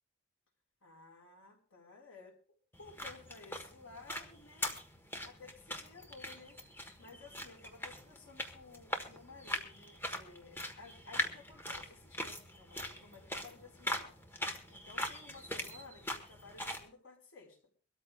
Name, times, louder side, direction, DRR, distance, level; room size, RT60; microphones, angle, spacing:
voice 1, 0.8-2.4 2.8-4.7 5.2-6.6 7.0-17.6, left 3 dB, 85° left, 1 dB, 4.7 m, -55 dB
sound 1, 2.7-16.9, left 1 dB, 10° left, 1.3 m, -42 dB
24.5 x 13.5 x 2.4 m, 0.39 s
head